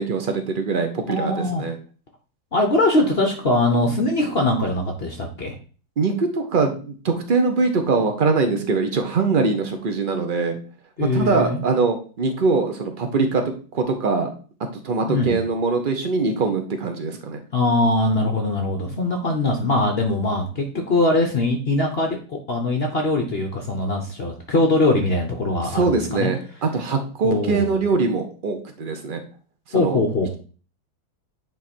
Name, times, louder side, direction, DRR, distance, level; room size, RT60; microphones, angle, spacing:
voice 1, 0.0-1.8 6.0-10.6 11.0-13.4 13.7-14.3 14.8-17.4 25.6-29.2 29.7-30.0, right 4 dB, 70° right, 5 dB, 0.4 m, -22 dB
voice 2, 1.1-1.6 2.5-5.5 11.0-11.6 15.0-15.4 17.5-26.3 27.2-27.8 29.7-30.4, left 2 dB, 50° left, 3 dB, 0.7 m, -22 dB
9.3 x 3.2 x 4.3 m, 0.39 s
omnidirectional pair, 2.1 m